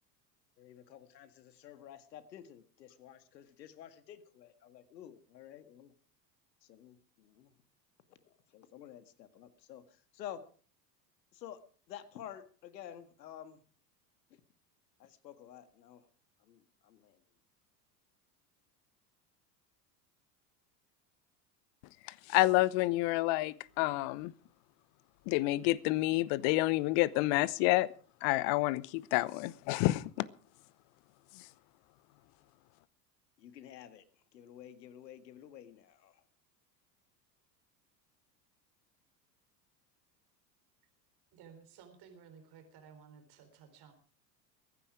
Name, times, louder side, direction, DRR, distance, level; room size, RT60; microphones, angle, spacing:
voice 1, 0.6-5.9 6.6-7.5 8.1-10.5 11.3-11.6 11.9-13.6 15.0-16.1 16.4-17.2 33.4-34.0 34.3-36.2, left 10 dB, 80° left, 11 dB, 1.9 m, -51 dB
voice 2, 22.0-24.3 25.3-27.9 28.2-30.3 31.3-31.5, left 19 dB, 55° left, 20 dB, 1.0 m, -29 dB
voice 3, 41.3-43.9, right 6 dB, 50° right, 7 dB, 4.1 m, -56 dB
22.5 x 10.0 x 4.8 m, 0.42 s
hypercardioid pair, 85°, 50 cm